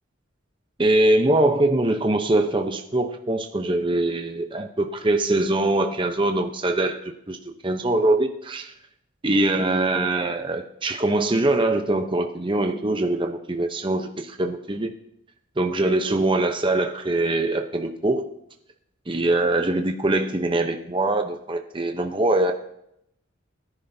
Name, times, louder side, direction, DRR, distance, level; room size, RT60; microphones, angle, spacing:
voice 1, 0.8-7.0 7.3-7.4 7.6-8.7 9.2-14.9 15.6-18.2 19.1-22.5, right 2 dB, 25° right, 4 dB, 0.8 m, -23 dB
20.5 x 10.0 x 2.8 m, 0.77 s
head